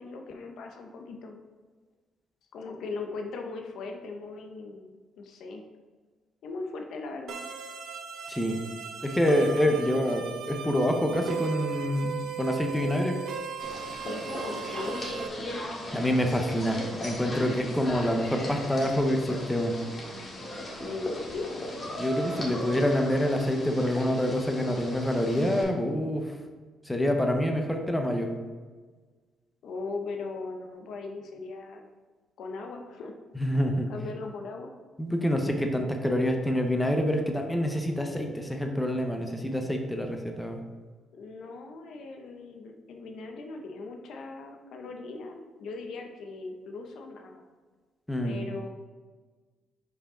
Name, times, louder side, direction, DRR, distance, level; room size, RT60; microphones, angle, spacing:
voice 1, 0.0-1.4 2.5-5.6 6.4-7.4 14.0-15.1 20.8-21.7 22.2-22.6 29.6-31.9 32.4-33.1 33.9-34.7 41.1-47.4 48.2-48.7, left 3 dB, 75° left, 3 dB, 0.8 m, -39 dB
sound 1, 7.3-15.3, right 7 dB, 75° right, 0.6 m, -37 dB
voice 2, 9.0-13.2 15.9-19.7 22.0-26.3 26.9-28.3 33.3-33.9 35.0-40.6 48.1-48.4, equal, 10° left, 4 dB, 0.8 m, -27 dB
sound 2, 13.6-25.6, left 1 dB, 35° left, 1.8 m, -37 dB
5.4 x 4.7 x 3.7 m, 1.4 s
cardioid pair, 90°, 0 cm